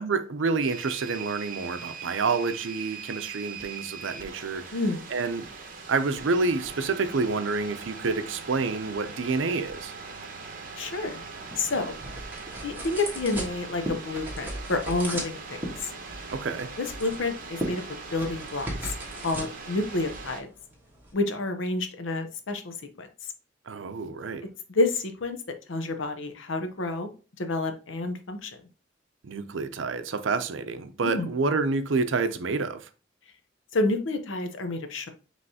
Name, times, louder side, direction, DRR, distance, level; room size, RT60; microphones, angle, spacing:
voice 1, 0.0-4.6 5.1-5.5 5.9-9.9 16.3-16.7 23.7-24.4 29.2-32.9, right 4 dB, 80° right, 0.5 m, -28 dB
sound 1, 0.6-20.4, right 4 dB, 45° right, 0.8 m, -41 dB
voice 2, 4.7-5.0 10.8-11.2 11.6-11.9 12.6-15.9 16.8-17.8 18.1-18.9 19.2-20.5 21.1-23.1 24.7-25.4 25.7-27.1 27.4-28.5 31.0-31.3 33.7-35.1, left 2 dB, 80° left, 0.7 m, -29 dB
sound 2, 10.9-21.1, right 1 dB, 10° right, 1.3 m, -38 dB
5.3 x 3.2 x 2.8 m
head